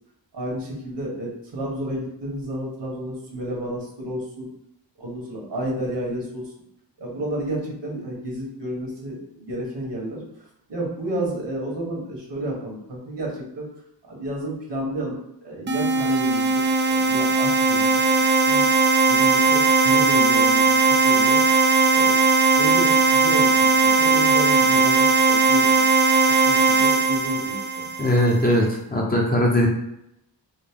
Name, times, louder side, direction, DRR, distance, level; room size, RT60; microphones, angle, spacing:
voice 1, 0.3-4.5 5.0-6.5 7.0-13.7 14.1-18.0 18.3-18.7 19.1-21.4 21.9-22.2 22.6-25.8 26.3-28.1, equal, 65° right, -2 dB, 1.4 m, -31 dB
sound 1, 15.7-28.4, right 4 dB, 25° right, 0.3 m, -18 dB
voice 2, 28.0-29.7, left 1 dB, 20° left, -3 dB, 0.8 m, -20 dB
3.9 x 2.1 x 3.6 m, 0.80 s
wide cardioid pair, 90°, 45 cm